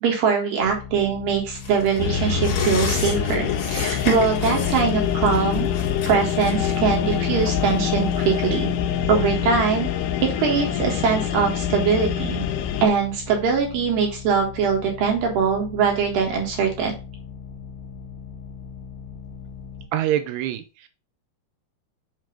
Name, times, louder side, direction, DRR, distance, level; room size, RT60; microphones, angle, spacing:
voice 1, 0.0-5.7 6.1-8.7 9.1-9.9 10.2-12.4 12.8-16.9, right 6 dB, 60° right, 1 dB, 3.0 m, -22 dB
sound 1, 0.6-19.9, left 6 dB, 70° left, 2.6 m, -39 dB
sound 2, 1.6-8.6 9.0-9.1, left 5 dB, 50° left, 3.2 m, -33 dB
sound 3, 2.0-12.9, left 8 dB, 90° left, 2.9 m, -25 dB
voice 2, 19.9-20.9, right 11 dB, 85° right, 9 dB, 3.0 m, -25 dB
7.7 x 3.2 x 5.1 m, 0.31 s
omnidirectional pair, 4.8 m